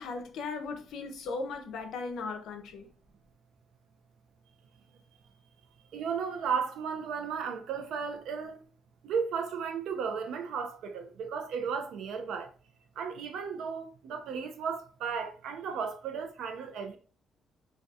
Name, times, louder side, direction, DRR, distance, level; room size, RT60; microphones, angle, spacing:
voice 1, 0.0-2.9, left 4 dB, 80° left, 0.5 m, -37 dB
voice 2, 5.9-8.6 9.0-12.5 13.0-17.0, right 6 dB, 80° right, 0.5 m, -34 dB
2.3 x 2.2 x 2.6 m
cardioid pair, 90°, 0 cm